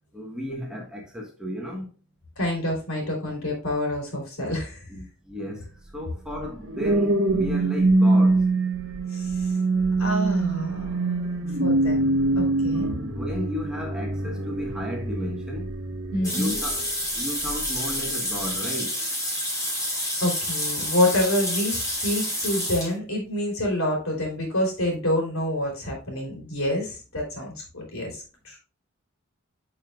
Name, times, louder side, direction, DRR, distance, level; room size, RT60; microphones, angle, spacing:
voice 1, 0.1-1.9 4.9-8.5 12.7-15.7 16.3-16.9 17.1-19.0, left 1 dB, 5° right, 1.2 m, -34 dB
voice 2, 2.4-4.9 9.1-9.5 10.0-13.0 16.1-16.5 20.2-28.6, left 1 dB, 80° left, 3.2 m, -27 dB
sound 1, 6.3-16.9 17.4-17.7, right 2 dB, 60° right, 0.9 m, -24 dB
sound 2, 16.2-22.9, left 1 dB, 15° left, 2.6 m, -29 dB
10.0 x 5.0 x 2.3 m
head